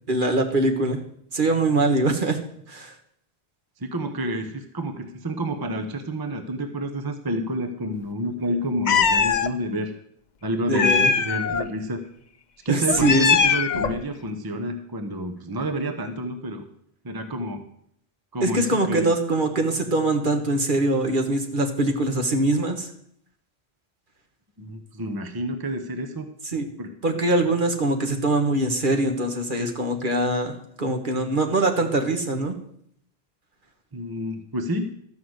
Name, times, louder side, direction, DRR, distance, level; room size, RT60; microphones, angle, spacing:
voice 1, 0.1-1.0 1.3-2.4 2.7-2.9 10.7-11.1 12.7-13.3 18.4-22.9 26.5-26.7 27.0-32.5, right 2 dB, 55° right, 4 dB, 1.5 m, -23 dB
voice 2, 3.8-9.9 10.4-12.0 12.6-16.6 17.0-17.6 18.3-19.1 24.6-26.3 26.8-26.9 33.9-34.9, right 1 dB, 25° right, 6 dB, 0.9 m, -29 dB
Meow, 8.9-9.5 10.7-11.6 12.9-14.0, left 6 dB, 50° left, 0.7 m, -21 dB
13.0 x 5.7 x 7.9 m, 0.69 s
omnidirectional pair, 1.1 m